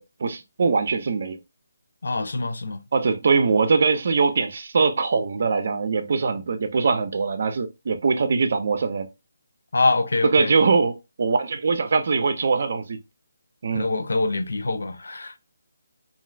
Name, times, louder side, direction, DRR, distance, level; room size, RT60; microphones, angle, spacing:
voice 1, 0.0-1.4 2.9-9.1 10.2-13.0 13.6-13.9, right 4 dB, 50° right, 0.5 m, -22 dB
voice 2, 2.0-2.8 9.7-10.5 13.7-15.4, left 3 dB, 75° left, 0.4 m, -24 dB
2.5 x 2.4 x 3.2 m
hypercardioid pair, 165°, 0 cm